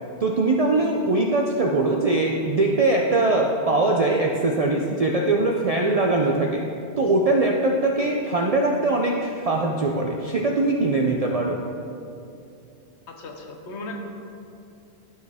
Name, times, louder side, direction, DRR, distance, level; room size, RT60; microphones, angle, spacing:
voice 1, 0.2-6.6 7.0-11.6, right 2 dB, 60° right, 0 dB, 0.4 m, -22 dB
voice 2, 13.1-14.0, left 2 dB, 75° left, 2 dB, 1.1 m, -36 dB
11.5 x 4.2 x 3.5 m, 2.6 s
omnidirectional pair, 1.2 m